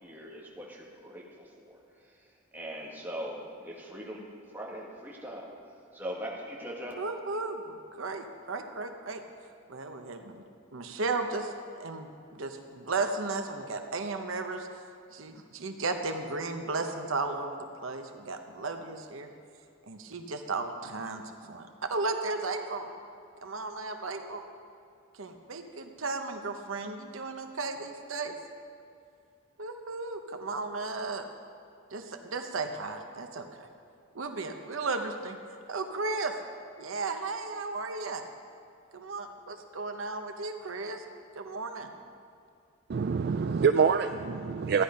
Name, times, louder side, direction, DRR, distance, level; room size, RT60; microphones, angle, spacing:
voice 1, 0.0-4.3 4.5-5.5 5.9-7.0, equal, 10° right, -3 dB, 1.8 m, -41 dB
voice 2, 7.0-9.2 9.7-10.4 10.7-14.7 15.1-19.3 19.9-22.9 23.4-24.4 25.2-28.4 29.6-31.2 31.9-33.7 34.1-35.4 35.7-36.3 36.8-38.2 38.9-41.0 41.3-41.9, right 3 dB, 80° right, 6 dB, 0.9 m, -35 dB
voice 3, 42.9-44.8, right 6 dB, 50° right, 8 dB, 0.3 m, -25 dB
14.0 x 10.5 x 5.3 m, 2.4 s
head